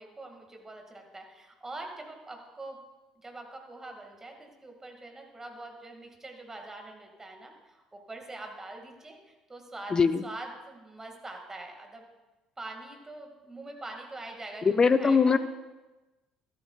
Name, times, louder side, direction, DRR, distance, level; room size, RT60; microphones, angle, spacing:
voice 1, 0.0-2.8 3.2-12.0 12.6-15.4, right 2 dB, 20° right, 3 dB, 2.0 m, -44 dB
voice 2, 9.9-10.2 14.7-15.4, left 5 dB, 30° left, 13 dB, 0.5 m, -21 dB
13.0 x 12.5 x 2.4 m, 1.1 s
figure-of-eight pair, 55°, 2 cm